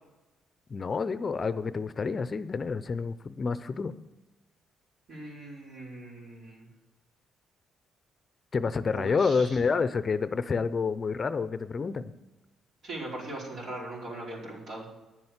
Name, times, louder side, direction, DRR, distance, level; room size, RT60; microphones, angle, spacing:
voice 1, 0.7-3.9 8.5-12.1, left 5 dB, 40° left, 14 dB, 0.6 m, -28 dB
voice 2, 5.1-6.7 8.9-9.6 12.8-14.9, right 2 dB, 65° right, -4 dB, 4.9 m, -40 dB
10.5 x 7.8 x 7.3 m, 1.1 s
cardioid pair, 90°, 0 cm